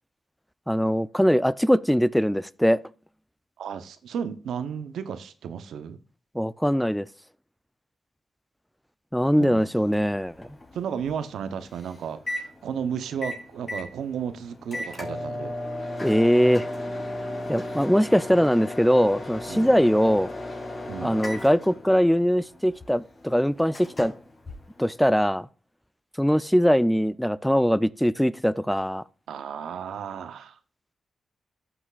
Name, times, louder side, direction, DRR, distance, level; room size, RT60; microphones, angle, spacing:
voice 1, 0.7-2.8 6.3-7.1 9.1-10.3 16.0-16.7 17.5-20.3 21.0-24.1 24.8-25.5 26.2-29.0, equal, 5° left, 0.4 m, -21 dB
voice 2, 3.6-6.0 9.4-9.9 10.7-15.6 19.5-19.8 20.9-21.2 29.3-30.6, right 7 dB, 85° right, 0.7 m, -33 dB
Microwave oven, 9.6-25.3, left 1 dB, 40° left, 3.3 m, -36 dB
13.5 x 6.1 x 2.4 m
cardioid pair, 55°, 0 cm